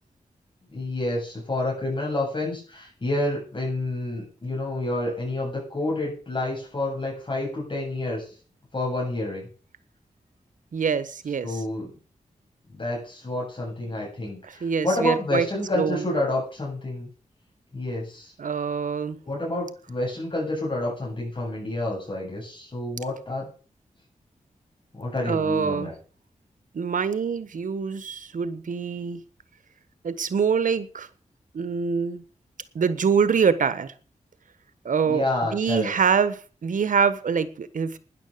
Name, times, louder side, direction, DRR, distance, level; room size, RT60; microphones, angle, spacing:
voice 1, 0.7-8.3 8.7-9.5 11.4-11.9 12.7-17.1 17.7-18.3 19.2-23.5 24.9-25.9 35.1-35.9, left 2 dB, 40° left, -3 dB, 8.0 m, -29 dB
voice 2, 10.7-11.6 14.5-15.4 15.7-16.1 18.4-19.2 25.2-25.9 26.7-29.2 30.0-31.1 31.5-32.2 32.7-33.9 34.8-35.2 35.5-38.0, right 6 dB, 85° right, 13 dB, 1.4 m, -25 dB
13.0 x 10.5 x 6.8 m, 0.39 s
wide cardioid pair, 95°, 13 cm